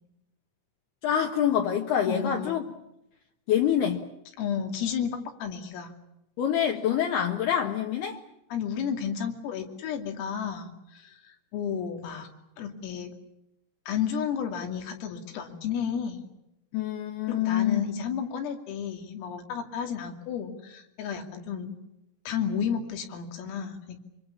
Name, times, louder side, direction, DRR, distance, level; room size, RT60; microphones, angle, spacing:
voice 1, 1.0-2.6 3.5-4.0 6.4-8.2 16.7-17.8, left 9 dB, 65° left, 2 dB, 2.9 m, -26 dB
voice 2, 2.1-2.7 4.4-5.9 8.5-12.3 12.6-13.1 13.9-16.2 17.3-21.7 22.3-24.0, left 7 dB, 90° left, 4 dB, 5.4 m, -32 dB
25.5 x 25.0 x 7.2 m, 0.87 s
omnidirectional pair, 5.8 m